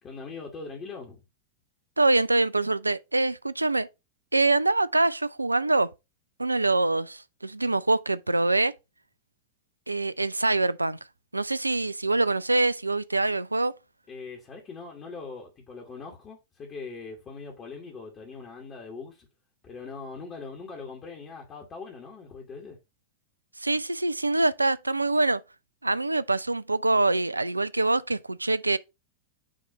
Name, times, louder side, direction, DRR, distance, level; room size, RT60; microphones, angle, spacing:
voice 1, 0.0-1.2 14.1-19.3 19.6-22.8, left 4 dB, 30° left, 1.7 m, -41 dB
voice 2, 2.0-3.9 4.3-5.9 6.4-8.7 9.9-11.0 11.3-13.7 23.6-25.4 25.8-28.8, right 2 dB, 85° right, 0.3 m, -24 dB
6.4 x 3.2 x 5.1 m
figure-of-eight pair, 90°, 0 cm